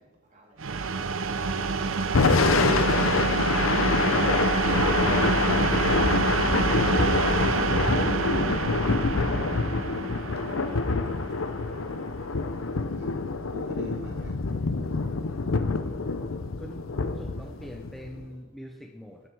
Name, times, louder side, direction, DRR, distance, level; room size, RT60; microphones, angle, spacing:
voice 1, 0.3-0.7 15.2-15.8, equal, 40° right, 3.0 m, -55 dB
sound 1, 0.6-12.2, right 4 dB, 85° right, 0.7 m, -27 dB
Thunder / Rain, 2.0-18.3, left 4 dB, 90° left, 0.7 m, -26 dB
voice 2, 2.3-4.2 4.7-4.9 5.4-5.5 13.0-13.1 13.5-14.3, right 2 dB, 55° right, 0.9 m, -42 dB
sound 2, 4.5-8.6 8.9-9.2, equal, 45° left, 3.5 m, -34 dB
voice 3, 16.6-19.2, equal, ahead, 0.6 m, -43 dB
12.5 x 11.5 x 4.6 m
head